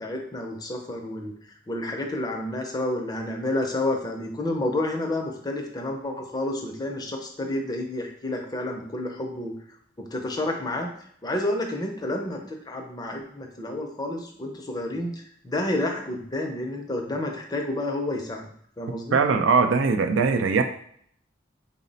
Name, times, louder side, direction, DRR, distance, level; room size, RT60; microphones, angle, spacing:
voice 1, 0.0-1.3 1.7-9.5 10.0-10.9 11.2-18.5 18.8-19.2, left 1 dB, 20° left, 2 dB, 0.5 m, -30 dB
voice 2, 19.1-20.6, right 4 dB, 85° right, 7 dB, 0.4 m, -20 dB
4.0 x 2.0 x 3.9 m, 0.65 s
head